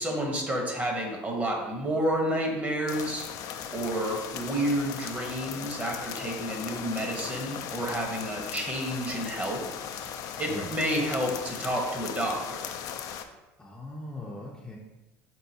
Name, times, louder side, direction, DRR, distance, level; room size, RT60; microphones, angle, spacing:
voice 1, 0.0-9.6 9.9-10.0 10.4-12.7, right 1 dB, 20° right, 1 dB, 1.0 m, -30 dB
sound 1, 2.9-13.2, left 8 dB, 55° left, 0.4 m, -38 dB
voice 2, 13.6-14.8, left 1 dB, 10° left, -3 dB, 0.6 m, -40 dB
4.6 x 3.8 x 2.7 m, 1.1 s
supercardioid pair, 100°, 7 cm